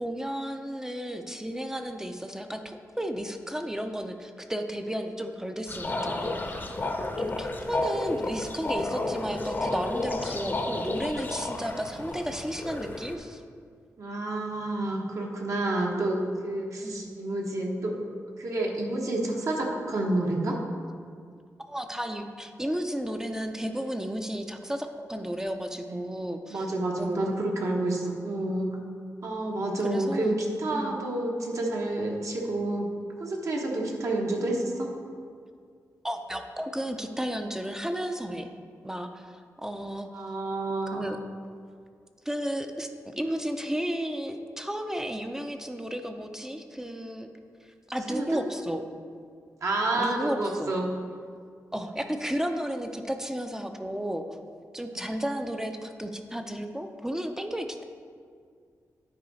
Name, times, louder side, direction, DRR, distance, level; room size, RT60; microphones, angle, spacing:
voice 1, 0.0-6.6 7.2-13.4 16.8-17.1 21.6-26.7 27.0-27.2 29.8-30.4 30.7-31.0 36.0-38.5 38.8-40.4 40.9-41.2 42.3-42.9 43.2-47.3 47.9-48.8 50.0-50.7 51.7-54.2 54.7-57.8, equal, 10° right, 6 dB, 0.4 m, -33 dB
sound 1, 5.7-13.2, left 2 dB, 35° left, 0.6 m, -32 dB
voice 2, 14.0-18.0 18.4-20.6 25.9-26.0 26.5-28.8 29.2-32.9 33.2-34.9 40.1-41.1 48.1-48.4 49.6-50.9 54.9-55.0, right 2 dB, 60° right, 0 dB, 1.0 m, -29 dB
9.6 x 4.7 x 4.0 m, 2.2 s
wide cardioid pair, 115°, 6 cm